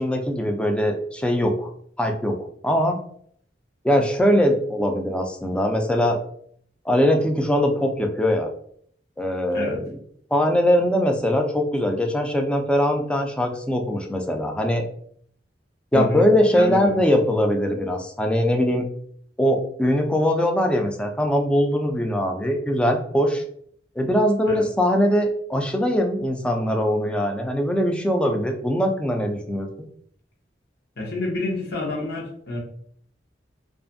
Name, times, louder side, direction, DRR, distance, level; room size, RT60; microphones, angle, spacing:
voice 1, 0.0-1.7 2.0-2.4 2.6-3.0 3.8-6.2 6.9-8.5 9.2-9.8 10.3-14.8 15.9-18.9 19.4-23.4 24.0-29.7, equal, 5° left, 3 dB, 0.3 m, -21 dB
voice 2, 15.9-16.2 16.5-17.1 24.5-24.7 31.0-32.6, left 2 dB, 60° left, -1 dB, 0.7 m, -28 dB
2.5 x 2.4 x 2.5 m, 0.63 s
head